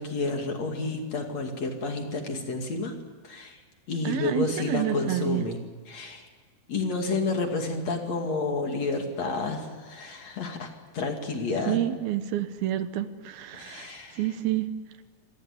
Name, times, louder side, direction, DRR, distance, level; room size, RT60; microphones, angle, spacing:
voice 1, 0.0-2.9 3.3-3.6 3.9-5.6 5.9-6.2 6.7-11.8 13.5-14.2, left 3 dB, 50° left, 3 dB, 3.3 m, -30 dB
voice 2, 4.0-5.4 11.7-14.7, right 13 dB, 75° right, 11 dB, 2.9 m, -29 dB
27.0 x 18.0 x 9.8 m, 1.4 s
omnidirectional pair, 4.4 m